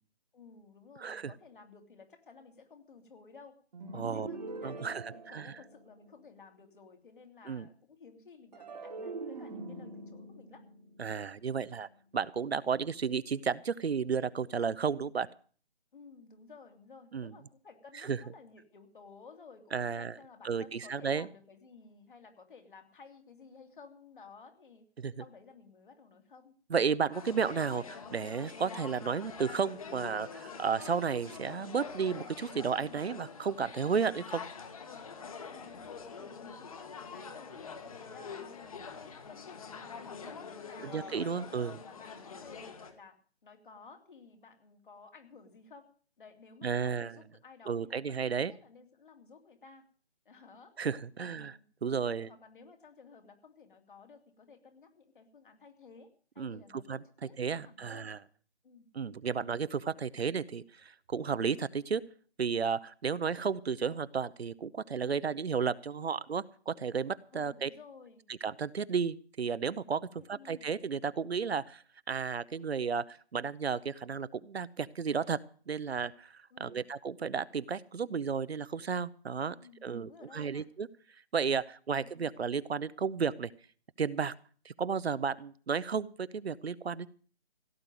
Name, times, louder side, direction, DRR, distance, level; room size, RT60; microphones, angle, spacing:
voice 1, 0.3-3.6 3.9-10.6 15.9-24.8 25.2-26.5 35.5-35.9 36.2-40.0 40.2-45.9 46.2-49.9 50.2-50.8 51.2-51.6 52.0-58.1 58.6-58.9 67.3-68.2 70.1-70.6 76.5-76.8 79.5-80.6, left 5 dB, 50° left, 5 dB, 2.7 m, -55 dB
voice 2, 1.0-1.3 3.9-4.3 4.6-5.5 7.5-7.7 11.0-15.3 17.1-17.3 18.0-18.2 19.7-20.1 20.4-21.3 25.0-25.1 26.7-34.4 40.8-41.8 46.6-47.1 47.7-48.5 50.8-51.5 51.8-52.3 56.4-57.0 57.4-58.2 58.9-62.0 62.4-67.7 68.4-75.4 75.7-79.6 79.8-80.9 81.3-83.5 84.0-84.3 84.6-87.1, right 6 dB, 70° right, 17 dB, 0.8 m, -33 dB
sound 1, 3.7-6.1 8.5-11.9, right 3 dB, 40° right, 1.5 m, -44 dB
sound 2, 27.1-42.9, left 5 dB, 35° left, 1.6 m, -45 dB
16.5 x 6.8 x 9.0 m, 0.44 s
figure-of-eight pair, 160°, 33 cm